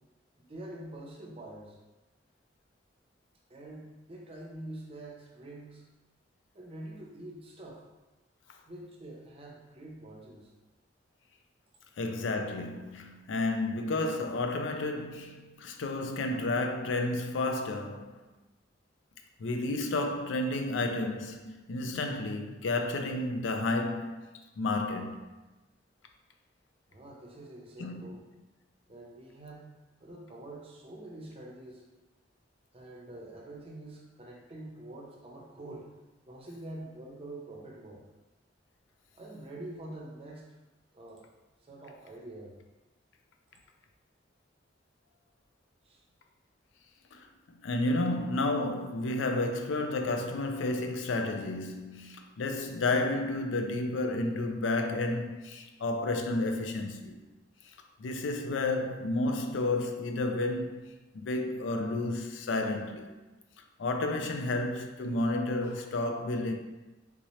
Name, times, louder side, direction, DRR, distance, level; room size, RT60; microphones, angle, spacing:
voice 1, 0.4-1.8 3.5-5.8 6.5-7.8 8.7-10.5 26.9-28.2 28.9-29.7 30.0-31.9 32.7-35.9 36.3-38.0 39.1-40.5 40.9-41.3 41.6-42.6 45.8-46.0, right 1 dB, 30° right, 0.6 m, -45 dB
voice 2, 12.0-18.2 19.4-24.3 24.6-25.2 27.8-28.0 47.1-47.3 47.6-57.2 58.0-60.9 61.1-63.1 63.8-66.5, left 2 dB, 85° left, 0.4 m, -31 dB
3.6 x 2.8 x 3.1 m
head